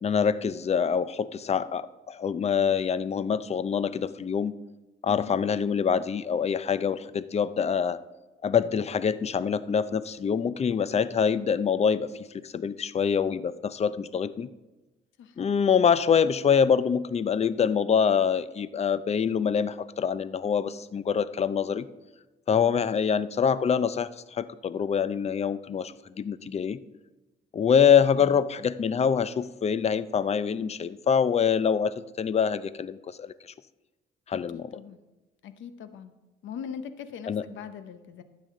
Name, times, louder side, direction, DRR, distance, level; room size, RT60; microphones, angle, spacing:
voice 1, 0.0-4.5 5.0-8.0 8.4-14.5 15.4-21.9 22.5-26.8 27.5-33.3 34.3-34.7 37.3-37.4, left 7 dB, 35° left, 16 dB, 0.5 m, -25 dB
voice 2, 5.1-5.4 15.2-15.4 28.2-28.4 34.3-35.0 35.4-36.1 36.4-38.2, left 7 dB, 75° left, 11 dB, 0.9 m, -41 dB
12.5 x 8.6 x 3.8 m, 1.1 s
cardioid pair, 90°, 20 cm